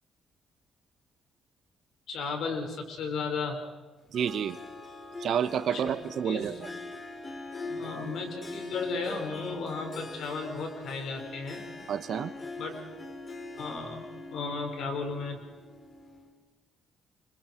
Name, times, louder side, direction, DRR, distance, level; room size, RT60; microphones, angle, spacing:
voice 1, 2.1-3.6 5.7-5.9 6.2-6.6 7.7-11.6 12.6-12.8 13.6-14.0 14.3-15.4, left 4 dB, 75° left, 4 dB, 5.3 m, -34 dB
Harp, 4.1-16.3, left 2 dB, 35° left, 4.1 m, -42 dB
voice 2, 4.1-4.6 5.2-6.5 11.9-12.3, right 8 dB, 70° right, 12 dB, 1.4 m, -29 dB
29.0 x 26.0 x 4.7 m, 1.3 s
cardioid pair, 75°, 0 cm